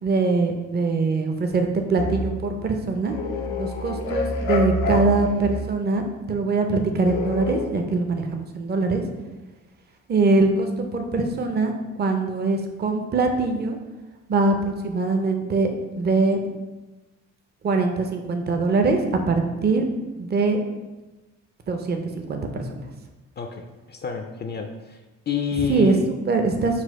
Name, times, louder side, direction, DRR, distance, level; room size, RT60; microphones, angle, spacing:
voice 1, 0.0-3.2 3.6-9.0 10.1-11.7 12.0-13.8 14.3-15.7 16.0-16.4 17.6-19.0 19.3-19.8 20.2-20.6 21.7-22.8 25.7-26.8, right 3 dB, 30° right, 4 dB, 0.6 m, -22 dB
sound 1, 2.0-2.4 3.1-5.7 7.0-7.7, left 2 dB, 90° left, 0.7 m, -27 dB
voice 2, 23.4-25.0 25.3-26.0, left 7 dB, 35° left, 4 dB, 0.4 m, -28 dB
4.2 x 2.3 x 4.6 m, 1.1 s
cardioid pair, 85°, 31 cm